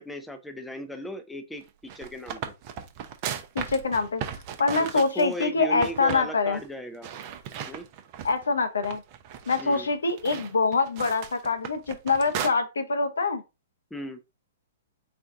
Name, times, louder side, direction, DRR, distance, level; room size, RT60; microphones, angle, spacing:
voice 1, 0.0-2.4 4.8-7.1 7.7-7.9 9.6-9.9 13.9-14.2, equal, 5° left, 0.5 m, -37 dB
sound 1, 1.7-5.5 5.8-6.3 6.5-6.7 7.0-8.4 8.8-12.5, right 8 dB, 40° right, 0.7 m, -36 dB
voice 2, 3.5-6.6 8.2-9.0 9.5-13.4, left 4 dB, 75° left, 0.7 m, -25 dB
4.4 x 2.4 x 3.7 m
figure-of-eight pair, 110°, 0 cm